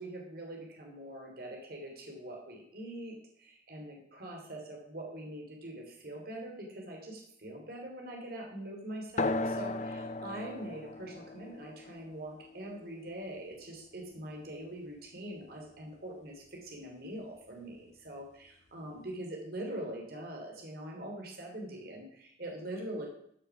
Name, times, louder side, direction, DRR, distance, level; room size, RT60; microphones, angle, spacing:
voice 1, 0.0-23.1, right 1 dB, 60° right, 1 dB, 3.2 m, -43 dB
sound 1, 9.2-14.2, left 2 dB, 40° left, 0.6 m, -37 dB
14.5 x 6.9 x 6.1 m, 0.70 s
head